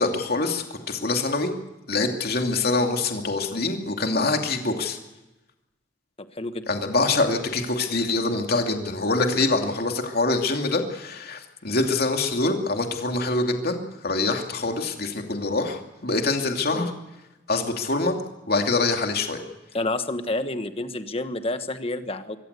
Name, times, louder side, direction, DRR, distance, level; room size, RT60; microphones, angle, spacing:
voice 1, 0.0-1.5 1.9-5.0 6.7-16.9 17.5-18.2 18.5-19.4, left 3 dB, 55° left, 3 dB, 2.7 m, -25 dB
voice 2, 6.2-6.6 16.7-16.9 19.7-22.4, left 2 dB, 30° left, 9 dB, 1.4 m, -29 dB
24.0 x 16.5 x 8.3 m, 1.0 s
head